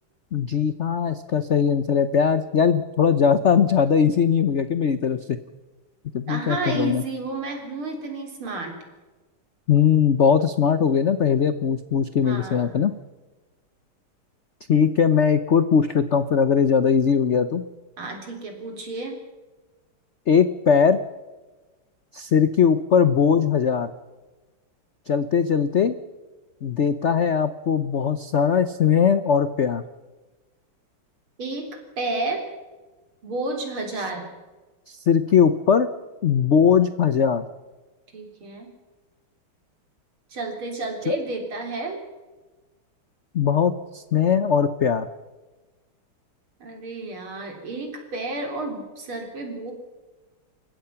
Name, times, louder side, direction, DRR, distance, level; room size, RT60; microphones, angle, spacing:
voice 1, 0.3-5.4 6.1-7.0 9.7-12.9 14.7-17.6 20.3-21.0 22.1-23.9 25.1-26.0 26.6-29.8 34.9-35.9 36.2-37.4 41.1-41.2 43.3-45.1, left 7 dB, 75° left, 12 dB, 0.6 m, -20 dB
voice 2, 6.3-8.8 12.2-12.8 18.0-19.2 31.4-31.7 32.0-32.4 33.2-34.3 38.1-38.7 40.3-42.0 46.6-49.7, right 2 dB, 75° right, 3 dB, 4.6 m, -31 dB
29.0 x 15.5 x 5.8 m, 1.2 s
omnidirectional pair, 2.3 m